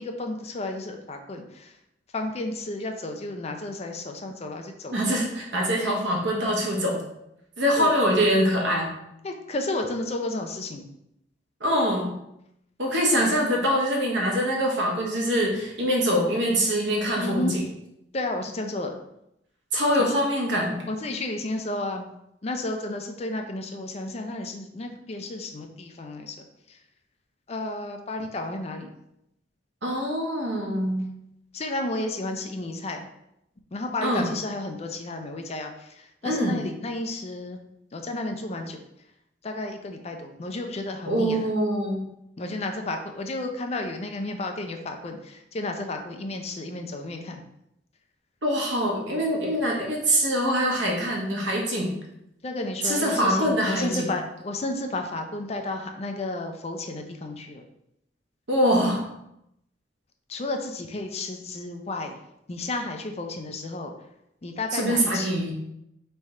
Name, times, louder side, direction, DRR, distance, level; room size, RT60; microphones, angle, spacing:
voice 1, 0.0-1.4 2.1-5.0 7.8-7.9 9.2-10.8 17.2-17.5 18.1-18.9 20.0-20.2 20.9-22.0 22.4-26.3 27.5-28.9 31.5-33.0 33.7-35.7 36.2-37.6 37.9-38.8 39.4-41.4 42.4-45.2 45.5-47.4 52.4-57.6 60.3-62.2 62.5-63.9 64.4-65.3, left 2 dB, 35° left, 4 dB, 0.5 m, -32 dB
voice 2, 4.9-7.0 7.6-8.9 11.6-12.2 12.8-17.7 19.7-20.8 29.8-31.1 34.0-34.4 36.2-36.7 41.1-42.0 48.4-51.9 52.8-54.1 58.5-59.1 64.7-65.5, equal, 80° right, -1 dB, 1.2 m, -24 dB
3.6 x 3.4 x 4.2 m, 0.81 s
head